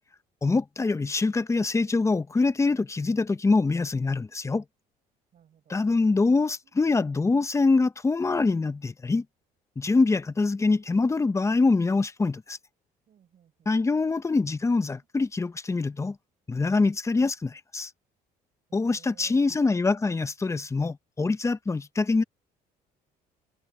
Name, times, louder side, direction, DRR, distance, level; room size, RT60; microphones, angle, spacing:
voice 1, 0.4-4.6 5.7-9.2 9.8-12.6 13.7-16.2 16.5-17.9 18.7-22.2, left 3 dB, 15° left, 0.9 m, -24 dB
voice 2, 5.3-5.8 6.6-6.8 13.1-13.7 18.7-19.6, right 9 dB, 50° right, 7.4 m, -59 dB
cardioid pair, 110°, 17 cm